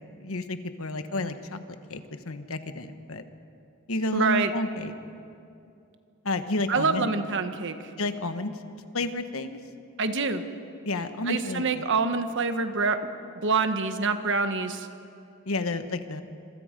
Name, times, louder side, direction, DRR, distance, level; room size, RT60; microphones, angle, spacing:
voice 1, 0.2-1.6 1.9-3.2 3.9-4.9 6.2-7.1 8.0-8.5 8.9-9.6 10.8-11.8 15.5-16.2, left 2 dB, 70° left, 9 dB, 1.3 m, -30 dB
voice 2, 4.1-4.5 6.7-7.9 10.0-10.4 11.2-13.0 13.4-14.9, right 4 dB, 60° right, 8 dB, 1.3 m, -26 dB
26.5 x 24.0 x 5.3 m, 2.6 s
head